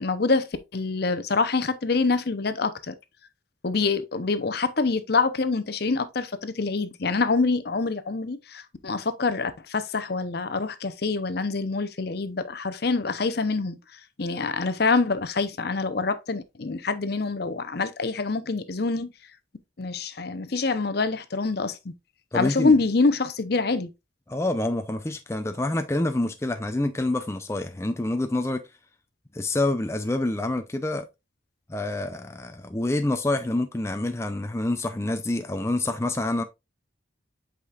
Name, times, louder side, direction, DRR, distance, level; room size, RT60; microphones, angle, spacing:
voice 1, 0.0-3.0 3.6-13.8 14.2-19.1 19.8-21.9 22.3-23.9, left 3 dB, 55° left, 0.7 m, -26 dB
voice 2, 22.3-22.7 24.3-28.6 29.3-31.1 31.7-36.4, left 2 dB, 15° left, 0.4 m, -27 dB
8.2 x 5.0 x 2.4 m
head